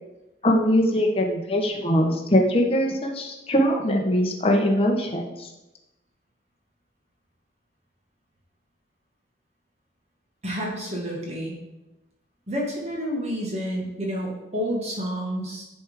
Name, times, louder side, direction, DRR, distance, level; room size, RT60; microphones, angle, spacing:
voice 1, 0.4-5.5, equal, 30° left, 0 dB, 1.1 m, -22 dB
voice 2, 10.4-11.6 12.5-15.6, equal, 35° right, -3 dB, 1.5 m, -29 dB
10.0 x 3.6 x 4.9 m, 0.98 s
head